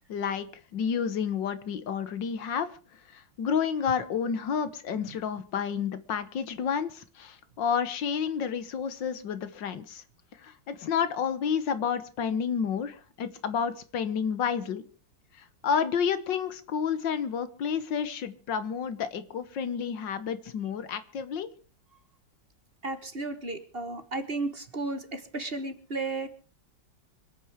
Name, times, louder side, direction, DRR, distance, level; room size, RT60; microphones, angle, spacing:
voice 1, 0.1-0.5 0.7-2.7 3.1-10.0 10.4-14.8 15.3-21.5, left 7 dB, 75° left, 13 dB, 1.8 m, -30 dB
voice 2, 22.8-26.3, right 3 dB, 35° right, 9 dB, 1.4 m, -34 dB
25.5 x 9.0 x 5.0 m, 0.38 s
omnidirectional pair, 2.0 m